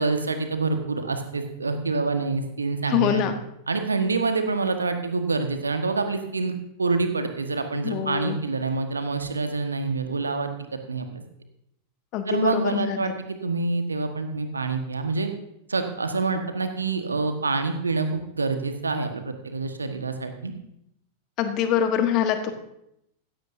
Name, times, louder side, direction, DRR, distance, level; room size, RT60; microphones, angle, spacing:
voice 1, 0.0-3.3 3.7-6.5 6.8-10.5 10.9-11.2 12.3-15.3 15.7-20.5, right 3 dB, 75° right, 7 dB, 1.4 m, -26 dB
voice 2, 2.9-3.3 7.8-8.4 12.1-13.1 21.4-22.5, left 9 dB, 40° left, 8 dB, 1.3 m, -24 dB
16.0 x 14.0 x 2.7 m, 0.80 s
figure-of-eight pair, 90°, 0 cm